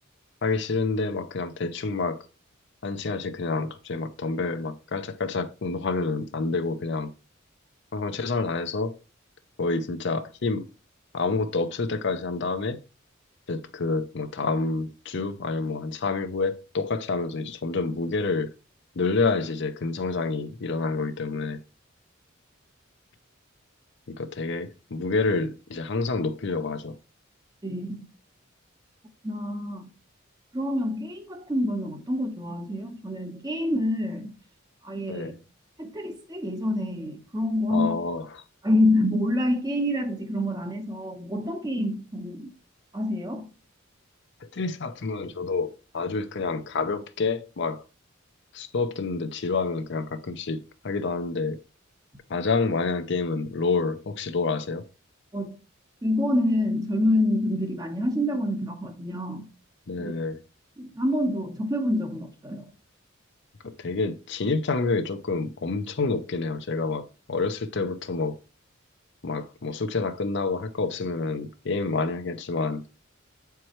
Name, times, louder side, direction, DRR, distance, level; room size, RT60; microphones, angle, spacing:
voice 1, 0.4-2.2 2.8-7.1 7.9-9.0 9.6-10.7 11.1-12.8 13.5-18.5 19.0-21.6 24.1-27.0 35.1-35.3 37.7-38.2 44.4-47.8 48.5-51.6 52.3-54.8 59.9-60.4 63.6-68.4 69.2-72.8, left 3 dB, 60° left, 0.6 m, -28 dB
voice 2, 27.6-28.1 29.2-29.9 30.5-34.3 34.8-35.3 35.8-38.0 38.6-42.5 42.9-43.5 55.3-55.6 56.0-59.5 60.0-60.1 60.8-62.7, left 1 dB, 20° right, 0.8 m, -27 dB
7.5 x 4.6 x 3.0 m
head